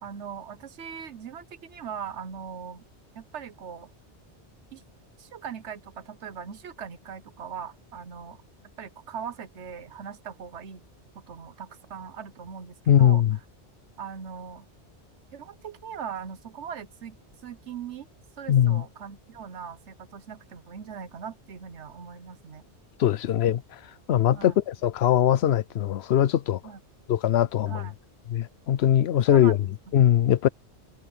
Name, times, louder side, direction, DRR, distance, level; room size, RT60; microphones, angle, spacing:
voice 1, 0.0-2.9 3.1-3.9 4.7-4.8 5.2-8.4 8.8-10.8 11.1-13.2 14.0-14.7 15.3-17.2 17.4-18.1 18.4-22.6 24.3-24.6 26.6-26.8 27.7-28.0 29.3-29.7, right 7 dB, 80° right, 1.3 m, -40 dB
voice 2, 12.9-13.4 18.5-18.8 23.0-23.6 24.1-26.6 27.1-27.8 28.3-29.6 29.9-30.5, left 11 dB, 70° left, 0.9 m, -21 dB
omnidirectional pair, 1.2 m